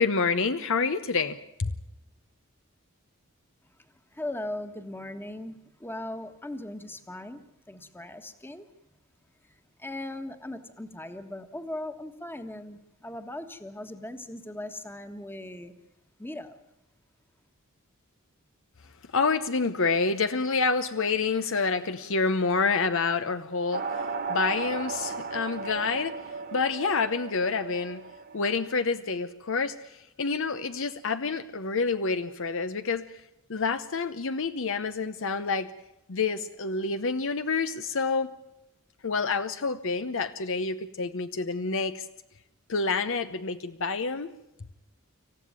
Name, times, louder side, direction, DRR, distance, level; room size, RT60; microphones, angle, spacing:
voice 1, 0.0-1.7 19.1-23.9 24.3-26.2 26.5-28.0 28.3-33.1 33.5-35.7 36.1-38.3 39.0-42.1 42.7-44.3, left 4 dB, 65° left, 0.9 m, -28 dB
voice 2, 4.1-7.4 7.7-8.7 9.8-15.7 16.2-16.5, left 1 dB, 10° left, 1.5 m, -38 dB
sound 1, 23.7-28.7, right 4 dB, 50° right, 1.8 m, -36 dB
26.5 x 15.0 x 9.5 m
head